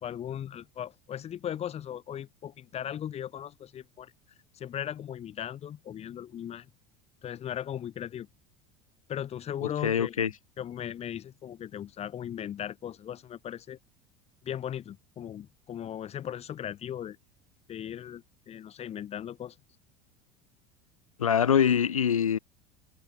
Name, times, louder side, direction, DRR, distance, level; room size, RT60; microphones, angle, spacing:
voice 1, 0.0-4.1 4.5-6.7 7.2-8.3 9.1-13.8 14.4-17.2 17.7-19.6, left 10 dB, 40° left, 2.4 m, -38 dB
voice 2, 9.6-10.3 21.2-22.4, left 8 dB, 85° left, 1.9 m, -24 dB
hypercardioid pair, 75°, 17 cm